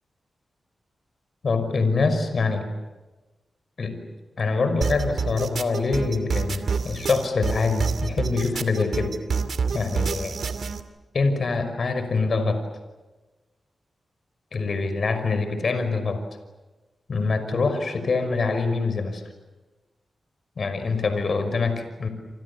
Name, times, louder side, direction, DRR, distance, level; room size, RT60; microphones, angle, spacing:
voice 1, 1.4-2.7 3.8-4.0 4.4-9.1 9.7-10.4 11.1-12.6 14.5-16.2 17.1-19.2 20.6-22.1, left 4 dB, 60° left, 9 dB, 5.7 m, -24 dB
sound 1, 4.8-10.8, right 5 dB, 70° right, 2.6 m, -27 dB
28.5 x 28.0 x 7.1 m, 1.1 s
cardioid pair, 65°, 0 cm